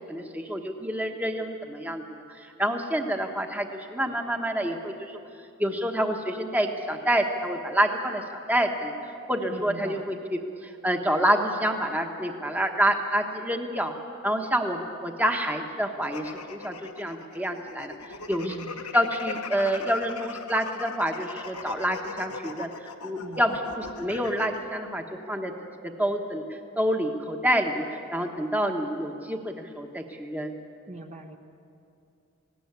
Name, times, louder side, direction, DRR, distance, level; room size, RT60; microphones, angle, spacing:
voice 1, 0.1-2.0 2.3-5.2 5.6-13.9 14.2-17.9 18.3-18.5 18.9-25.5 25.8-30.5, equal, 5° right, 3 dB, 1.2 m, -28 dB
voice 2, 9.5-10.1 18.4-18.8 23.2-23.7 30.9-31.4, right 1 dB, 30° right, 4 dB, 1.0 m, -41 dB
sound 1, 16.0-24.6, left 5 dB, 85° left, 1.4 m, -39 dB
19.5 x 17.0 x 9.6 m, 2.6 s
head